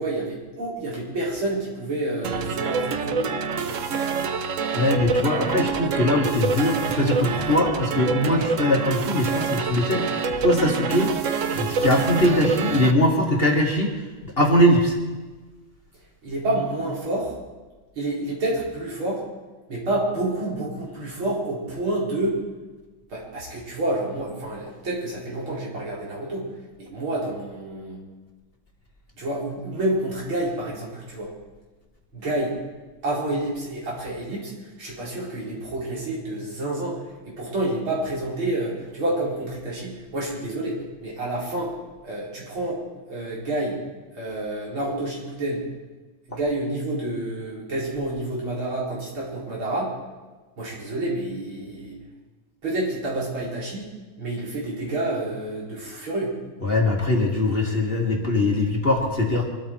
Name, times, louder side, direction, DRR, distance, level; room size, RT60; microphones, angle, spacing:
voice 1, 0.0-3.3 3.6-3.8 16.2-17.3 18.0-19.2 19.7-22.4 23.1-28.0 29.2-31.3 32.1-32.6 33.0-41.7 42.0-42.8 43.1-43.8 44.1-45.6 46.3-49.9 50.6-52.0 52.6-53.9 54.2-56.4, right 1 dB, 90° right, -5 dB, 5.3 m, -29 dB
sound 1, 2.2-12.9, right 5 dB, 60° right, 0.9 m, -26 dB
voice 2, 4.7-11.1 11.5-15.0 56.6-59.4, left 1 dB, 30° left, 0 dB, 2.2 m, -21 dB
24.0 x 13.0 x 4.6 m, 1.3 s
omnidirectional pair, 2.2 m